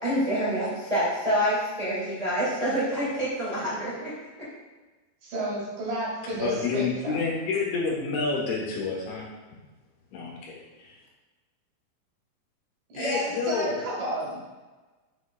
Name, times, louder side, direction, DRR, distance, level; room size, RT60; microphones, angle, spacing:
voice 1, 0.0-4.1, equal, 80° right, -10 dB, 0.3 m, -27 dB
voice 2, 5.2-7.1 12.9-14.4, right 1 dB, 55° right, -6 dB, 3.7 m, -31 dB
voice 3, 6.4-9.3 10.1-11.0 12.9-13.8, left 4 dB, 80° left, -3 dB, 3.8 m, -29 dB
8.0 x 7.1 x 2.3 m, 1.2 s
omnidirectional pair, 5.3 m